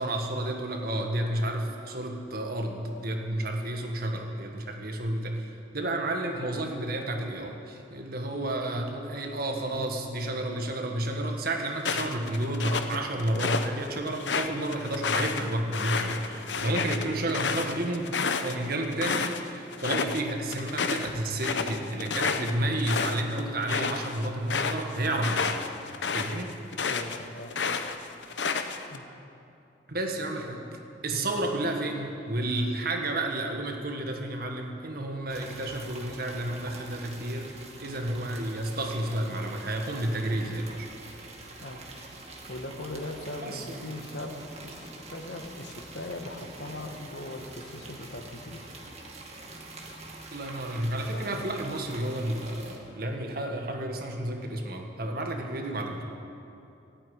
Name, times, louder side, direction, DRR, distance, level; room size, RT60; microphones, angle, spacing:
voice 1, 0.0-18.1 18.4-25.6 26.1-26.5 29.9-30.7 31.0-37.5 37.8-40.9 43.4-43.9 50.3-56.0, right 1 dB, 60° right, 3 dB, 1.7 m, -31 dB
sound 1, 11.8-13.7 14.1-19.4 19.7-20.2 20.5-27.2 27.5-29.0, left 5 dB, 85° left, 0.8 m, -30 dB
voice 2, 26.9-27.5 28.9-29.0 31.1-31.4 41.6-41.8 42.5-48.6 51.1-51.5, left 1 dB, 70° left, 4 dB, 1.5 m, -39 dB
sound 2, 35.3-52.8, right 2 dB, 40° right, 1.9 m, -45 dB
15.0 x 8.9 x 9.4 m, 2.8 s
head